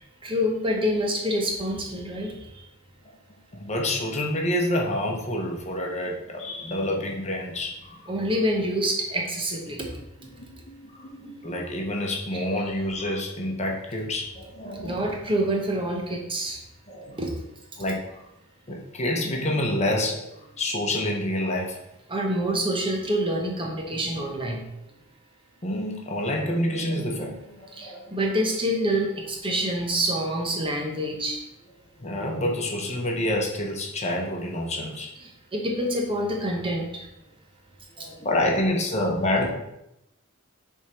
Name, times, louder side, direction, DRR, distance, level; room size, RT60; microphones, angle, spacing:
voice 1, 0.2-2.6 8.1-9.9 14.8-16.6 17.2-17.3 22.1-24.6 27.7-31.4 35.5-37.0 38.0-38.1, equal, 25° right, 1 dB, 0.9 m, -27 dB
voice 2, 3.5-8.1 10.2-15.0 16.9-17.2 17.8-18.2 18.7-21.8 25.6-28.2 32.0-35.1 38.0-39.5, left 1 dB, 35° left, 0 dB, 1.0 m, -28 dB
6.9 x 3.6 x 4.4 m, 0.86 s
head